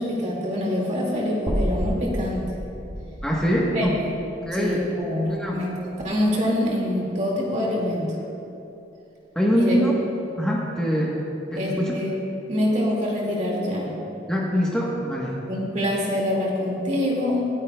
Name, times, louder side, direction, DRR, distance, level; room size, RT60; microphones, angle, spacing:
voice 1, 0.0-2.5 3.7-4.2 4.5-8.2 9.5-9.8 11.5-12.2 12.5-13.9 15.5-17.5, left 1 dB, 40° right, -3 dB, 2.1 m, -25 dB
sound 1, 1.5-5.6, equal, 25° right, 1.0 m, -31 dB
voice 2, 3.2-4.0 4.5-4.8 5.3-5.6 9.3-9.9 10.4-11.2 11.5-11.9 14.3-15.3, equal, 5° left, -5 dB, 1.1 m, -23 dB
25.0 x 9.1 x 2.3 m, 2.8 s
head